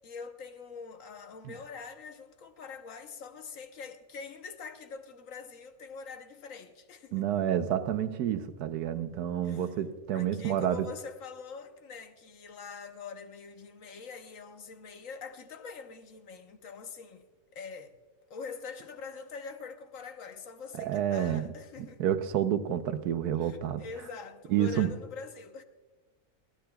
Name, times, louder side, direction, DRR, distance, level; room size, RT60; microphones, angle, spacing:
voice 1, 0.0-7.2 9.4-9.7 10.1-17.3 17.5-17.9 18.3-22.0 23.3-25.6, left 5 dB, 60° left, 1.2 m, -44 dB
voice 2, 7.1-10.9 20.8-21.4 22.0-23.8 24.5-24.9, right 10 dB, 80° right, 1.3 m, -29 dB
21.5 x 15.5 x 2.3 m
omnidirectional pair, 1.6 m